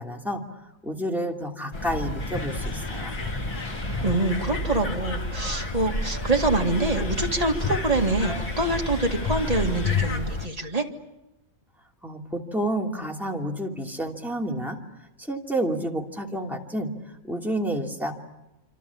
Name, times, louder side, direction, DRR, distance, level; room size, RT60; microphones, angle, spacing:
voice 1, 0.0-3.2 12.0-16.9 17.2-18.1, right 1 dB, ahead, 0 dB, 2.6 m, -30 dB
sound 1, 1.7-10.5, left 2 dB, 20° left, 0.9 m, -30 dB
sound 2, 2.2-10.2, left 3 dB, 80° left, 3.1 m, -38 dB
voice 2, 4.0-10.8, right 2 dB, 25° right, 2 dB, 2.1 m, -25 dB
26.5 x 26.5 x 7.2 m, 0.94 s
omnidirectional pair, 1.6 m